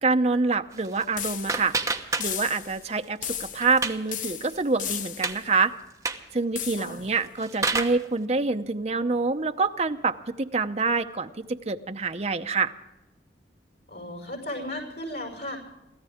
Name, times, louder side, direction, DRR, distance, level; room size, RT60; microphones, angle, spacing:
voice 1, 0.0-1.8 2.2-5.7 6.3-12.7, right 4 dB, 35° right, 7 dB, 0.7 m, -26 dB
sound 1, 0.7-2.7 3.0-4.1 4.5-4.6 5.0-5.4 5.9-6.3 7.1-8.0, right 3 dB, 20° right, 1.0 m, -30 dB
sound 2, 1.2-1.8 2.2-2.8 3.2-3.8 4.1-5.4 6.6-7.1, left 9 dB, 45° left, 0.7 m, -35 dB
voice 2, 13.9-15.6, left 1 dB, 80° left, 3 dB, 6.0 m, -35 dB
24.0 x 15.5 x 3.6 m, 0.96 s
head